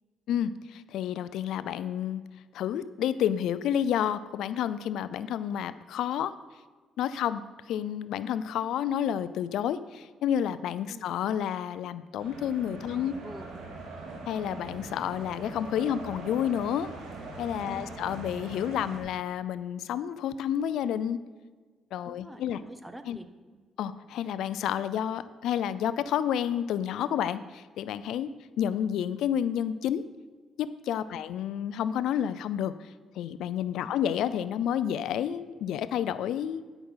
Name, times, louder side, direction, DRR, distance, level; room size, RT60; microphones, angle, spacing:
voice 1, 0.3-2.2 2.5-6.4 7.0-7.4 7.7-13.1 14.3-16.9 17.4-21.2 21.9-22.6 23.1-23.2 23.8-28.3 28.6-30.0 30.6-32.9 33.2-36.6, left 9 dB, 80° left, 15 dB, 0.4 m, -30 dB
sound 1, 12.2-19.0, right 3 dB, 90° right, 2.1 m, -42 dB
voice 2, 12.9-13.9 17.6-18.1 22.0-23.6 31.1-31.3 33.8-34.0, right 1 dB, 10° right, 9 dB, 0.9 m, -47 dB
12.5 x 6.0 x 5.6 m, 1.4 s
cardioid pair, 90°, 0 cm